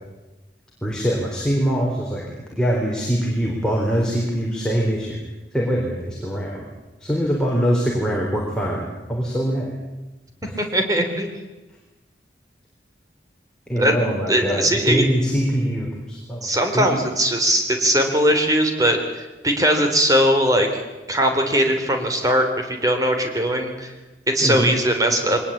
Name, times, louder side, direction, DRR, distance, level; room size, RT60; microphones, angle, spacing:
voice 1, 0.8-2.2 2.6-5.2 5.5-6.6 7.0-9.7 10.4-10.6 13.7-16.5 16.7-16.9 24.4-24.7, equal, 5° left, -3 dB, 3.9 m, -23 dB
voice 2, 10.6-11.3 13.8-13.9 14.3-15.0 16.4-19.0 19.4-20.8 21.1-23.9 24.3-25.4, equal, 20° right, 4 dB, 3.4 m, -20 dB
23.0 x 19.5 x 8.6 m, 1.1 s
head